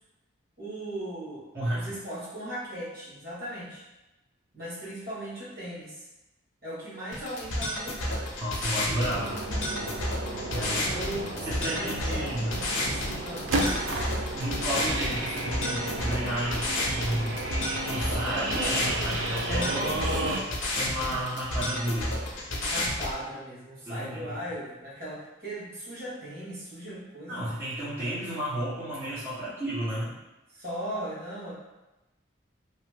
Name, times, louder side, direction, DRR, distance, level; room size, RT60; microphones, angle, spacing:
voice 1, 0.6-3.8 4.5-6.1 6.6-8.4 8.7-9.1 10.5-11.4 11.6-13.6 19.4-20.2 22.5-27.5 30.5-31.5, equal, 50° right, -9 dB, 1.2 m, -38 dB
voice 2, 1.5-1.9 8.4-9.4 10.5-10.8 11.4-12.5 14.3-17.4 17.9-20.3 20.7-22.2 23.9-24.3 27.3-30.1, right 1 dB, 10° right, -13 dB, 1.0 m, -32 dB
sound 1, 7.1-23.1, left 1 dB, 80° left, 0.7 m, -31 dB
sound 2, 9.1-20.4, right 1 dB, 85° right, 0.4 m, -32 dB
3.1 x 2.0 x 3.2 m, 1.0 s
head